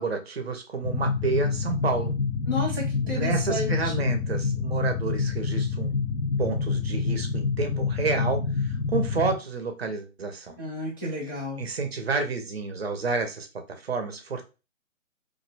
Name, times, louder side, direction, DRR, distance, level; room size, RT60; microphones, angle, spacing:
voice 1, 0.0-2.1 3.0-5.9 6.4-10.6 11.6-13.5 13.8-14.4, right 4 dB, 50° right, 0.7 m, -30 dB
sound 1, 0.8-9.3, left 4 dB, 75° left, 0.8 m, -27 dB
voice 2, 2.5-4.0 10.6-11.7, left 2 dB, 15° left, 0.5 m, -32 dB
2.6 x 2.1 x 4.0 m
hypercardioid pair, 160°, 41 cm